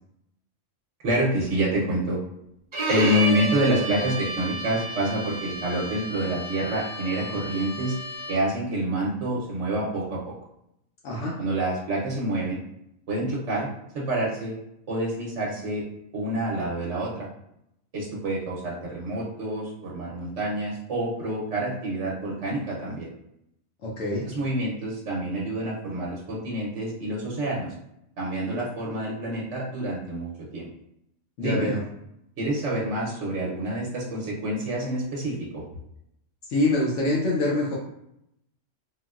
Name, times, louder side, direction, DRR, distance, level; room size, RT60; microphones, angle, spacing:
voice 1, 1.0-2.2 2.9-7.9 8.3-10.3 11.4-12.6 13.1-13.7 13.9-14.5 14.9-15.8 16.1-17.3 17.9-23.1 24.3-27.7 28.2-30.7 31.4-31.7 32.4-35.6, right 1 dB, 65° right, -5 dB, 1.0 m, -27 dB
Bowed string instrument, 2.7-8.6, right 1 dB, 50° right, 0.3 m, -32 dB
voice 2, 11.0-11.4 23.8-24.2 31.4-31.8 36.5-37.7, left 2 dB, 70° left, -4 dB, 0.9 m, -25 dB
3.7 x 2.1 x 2.3 m, 0.79 s
omnidirectional pair, 1.3 m